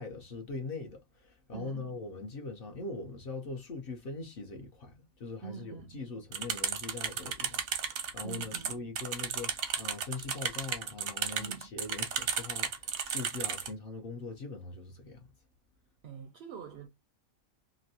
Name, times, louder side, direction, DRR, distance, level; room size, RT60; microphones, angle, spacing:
voice 1, 0.0-15.3, left 3 dB, 55° left, 0.7 m, -42 dB
voice 2, 1.5-2.0 5.4-6.1 8.2-8.8 11.4-11.7 16.0-16.9, right 6 dB, 65° right, 0.7 m, -44 dB
sound 1, 6.3-13.7, right 7 dB, 85° right, 1.2 m, -34 dB
3.0 x 2.5 x 2.7 m
omnidirectional pair, 1.4 m